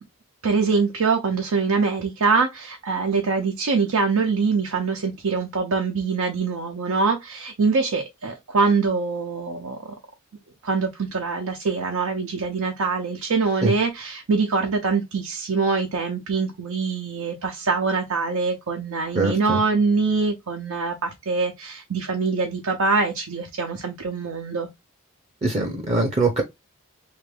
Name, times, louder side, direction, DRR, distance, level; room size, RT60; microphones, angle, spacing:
voice 1, 0.4-9.8 10.6-24.7, right 4 dB, 85° right, 0.7 m, -24 dB
voice 2, 19.2-19.6 25.4-26.4, right 3 dB, 30° right, 0.6 m, -22 dB
3.3 x 2.5 x 3.4 m
head